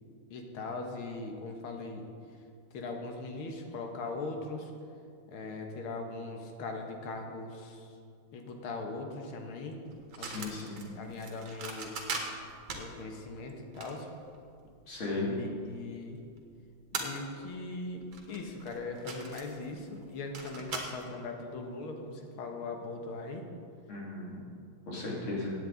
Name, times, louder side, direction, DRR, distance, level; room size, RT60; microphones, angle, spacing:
voice 1, 0.3-2.1 2.7-4.7 5.3-7.9 8.3-9.8 10.2-11.9 12.7-14.1 15.3-16.2 16.9-23.5, left 3 dB, 90° left, 3 dB, 2.1 m, -40 dB
sound 1, 9.9-15.0 15.5-15.6 16.5-16.6 16.9-17.6 17.9-21.1, right 4 dB, 70° right, 2.1 m, -40 dB
voice 2, 10.2-10.9 14.9-15.3 23.9-24.4 24.9-25.5, left 2 dB, 70° left, -4 dB, 3.4 m, -36 dB
16.5 x 8.7 x 3.9 m, 2.4 s
omnidirectional pair, 2.3 m